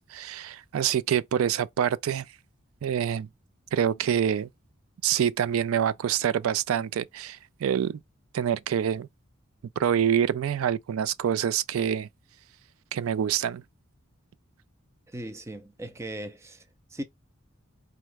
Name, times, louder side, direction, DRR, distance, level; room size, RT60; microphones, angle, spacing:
voice 1, 0.0-2.3 2.8-3.3 3.7-4.5 5.0-8.0 8.3-9.1 9.8-12.1 12.9-13.6, right 9 dB, 80° right, 0.3 m, -26 dB
voice 2, 15.1-17.0, right 1 dB, 15° right, 0.4 m, -38 dB
4.5 x 2.4 x 3.1 m
head